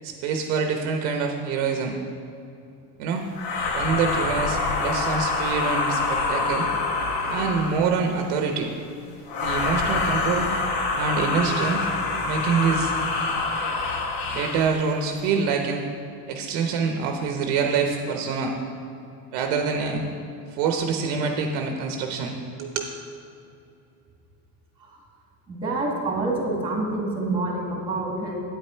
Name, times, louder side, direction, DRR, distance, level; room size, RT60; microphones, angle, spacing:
voice 1, 0.0-2.0 3.0-3.3 3.7-6.7 7.3-8.7 9.4-10.5 11.0-11.9 12.2-12.9 14.3-15.8 16.3-18.6 19.3-20.0 20.5-22.9, right 5 dB, 55° right, 4 dB, 0.9 m, -25 dB
sound 1, 3.3-7.9 9.3-14.7, left 3 dB, 45° left, 1.2 m, -26 dB
voice 2, 25.5-28.4, right 2 dB, 10° right, -1 dB, 1.9 m, -27 dB
9.1 x 8.9 x 4.4 m, 2.7 s
cardioid pair, 150°, 47 cm